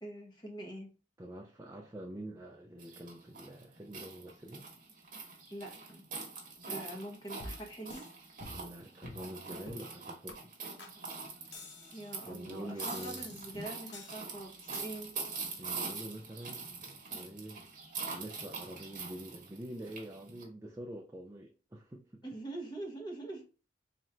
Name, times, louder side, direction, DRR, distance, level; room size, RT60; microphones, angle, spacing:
voice 1, 0.0-0.9 5.5-6.1 6.7-8.1 11.9-15.1 22.2-23.4, right 1 dB, 25° left, 1.0 m, -44 dB
voice 2, 1.2-4.7 8.5-10.5 12.2-13.2 15.6-17.7 18.1-22.2, right 1 dB, 15° right, 0.4 m, -46 dB
sound 1, 2.8-20.4, right 4 dB, 45° right, 1.1 m, -44 dB
sound 2, 7.4-8.1 8.4-8.8 9.0-9.3 9.7-9.9 10.3-10.4 10.8-10.9 11.5-12.2 12.8-13.5 13.9-14.2 14.7-14.8, left 2 dB, 70° left, 0.9 m, -48 dB
3.1 x 2.5 x 4.3 m
head